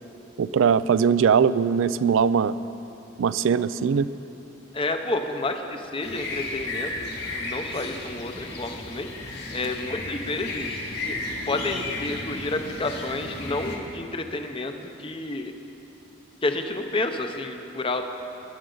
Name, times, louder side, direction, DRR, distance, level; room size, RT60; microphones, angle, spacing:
voice 1, 0.4-2.5 3.2-4.1, right 6 dB, 80° right, 16 dB, 0.3 m, -21 dB
voice 2, 4.7-9.1 9.5-10.8 11.0-11.2 11.5-15.5 16.4-18.0, left 2 dB, 25° left, 6 dB, 0.6 m, -30 dB
sound 1, 6.0-13.8, left 2 dB, 55° left, 1.7 m, -34 dB
18.0 x 11.0 x 3.9 m, 2.9 s
head